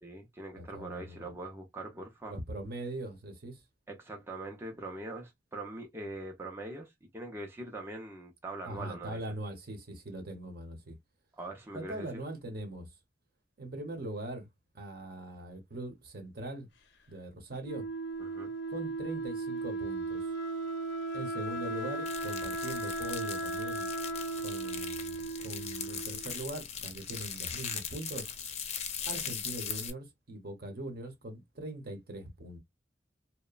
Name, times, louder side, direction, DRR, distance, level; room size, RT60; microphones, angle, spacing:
voice 1, 0.0-2.4 3.9-9.2 11.4-12.2 18.2-18.5, right 2 dB, 15° right, 0.5 m, -42 dB
voice 2, 0.6-1.2 2.3-3.6 8.6-11.0 11.7-12.9 13.6-14.5 14.7-16.7 17.1-17.9 18.7-20.2 21.1-23.9 24.4-28.3 29.1-32.6, right 1 dB, 60° right, 0.9 m, -41 dB
Wind instrument woodwind instrument, 17.6-26.4, right 2 dB, 75° left, 0.6 m, -36 dB
sound 1, 22.1-29.9, left 7 dB, 40° left, 0.5 m, -40 dB
2.9 x 2.1 x 2.3 m
head